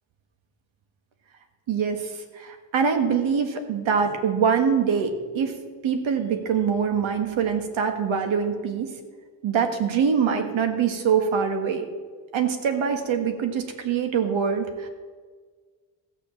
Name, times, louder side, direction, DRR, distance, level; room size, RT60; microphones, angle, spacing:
voice 1, 1.7-5.6 5.8-8.9 9.4-11.8 12.3-14.9, right 6 dB, 90° right, 6 dB, 1.6 m, -24 dB
15.0 x 7.1 x 7.2 m, 1.5 s
wide cardioid pair, 145°, 46 cm